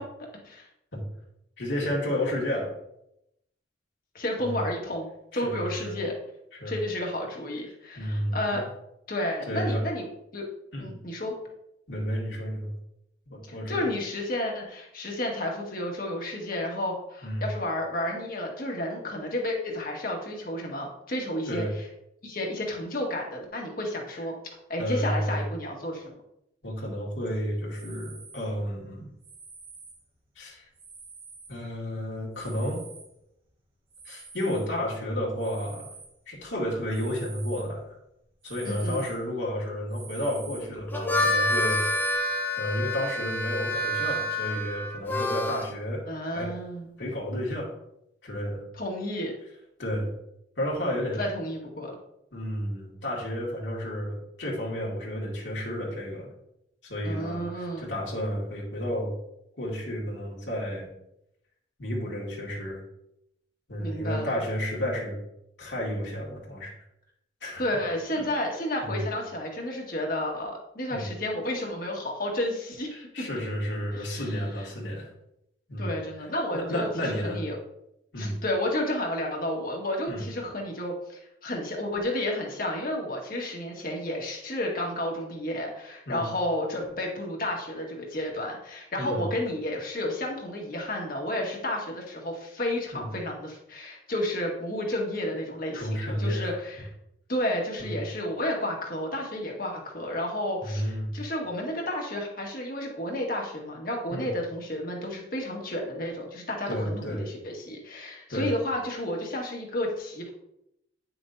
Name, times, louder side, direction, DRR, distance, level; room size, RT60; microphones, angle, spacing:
voice 1, 1.6-2.7 4.4-4.7 5.3-6.0 6.5-6.8 8.0-8.7 9.5-9.8 10.7-11.0 11.9-12.7 13.3-13.9 17.2-17.5 21.5-21.7 24.8-25.5 26.6-29.1 30.4-30.6 31.5-32.8 34.0-35.9 36.3-37.9 38.4-41.8 42.6-46.0 46.3-46.5 47.0-47.7 48.2-48.6 49.8-50.1 50.6-51.2 52.3-56.3 56.8-59.1 59.6-60.9 61.8-62.8 63.7-65.2 65.6-66.7 67.4-67.6 68.2-68.3 68.8-69.0 70.9-71.1 72.9-75.1 75.7-76.0 76.5-77.4 78.1-78.4 80.1-80.2 86.1-86.3 89.0-89.3 92.9-93.1 95.7-96.5 97.8-98.0 100.6-101.1 104.1-104.3 106.7-107.3 108.3-108.5, equal, 80° left, -3 dB, 2.2 m, -31 dB
voice 2, 4.1-5.1 5.3-6.1 6.6-8.6 9.1-10.1 10.3-10.4 10.8-11.4 13.5-21.6 22.2-24.3 24.7-26.1 38.6-39.0 46.1-46.9 48.7-49.3 51.2-51.9 57.0-57.9 63.8-64.3 67.6-72.9 73.2-73.3 73.9-74.4 75.8-77.6 78.2-96.9 97.3-110.3, left 1 dB, 50° left, 0 dB, 1.6 m, -31 dB
sound 1, 27.7-28.5 29.2-30.0 30.8-31.6 32.3-33.1 33.9-34.7 35.4-36.1 36.9-37.7 38.4-39.2 39.9-40.7 41.4-42.2, right 4 dB, 30° right, 2.0 m, -44 dB
Harmonica, 40.8-45.7, left 1 dB, 10° left, 0.7 m, -28 dB
9.5 x 6.1 x 2.7 m, 0.81 s
head